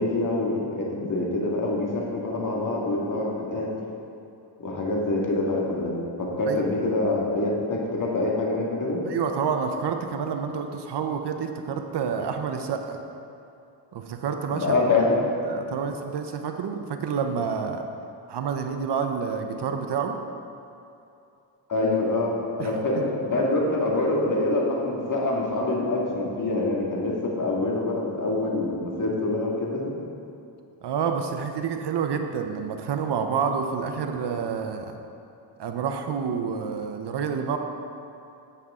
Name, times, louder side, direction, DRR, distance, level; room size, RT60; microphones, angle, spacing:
voice 1, 0.0-3.7 4.6-5.9 6.2-9.0 14.5-15.3 21.7-30.0, left 2 dB, 45° left, -2 dB, 2.0 m, -25 dB
voice 2, 9.1-13.0 13.9-14.8 15.1-17.8 18.3-20.2 22.6-22.7 30.8-35.0 35.6-37.6, right 6 dB, 65° right, 5 dB, 0.8 m, -28 dB
10.0 x 8.2 x 3.7 m, 2.7 s
cardioid pair, 85°, 45 cm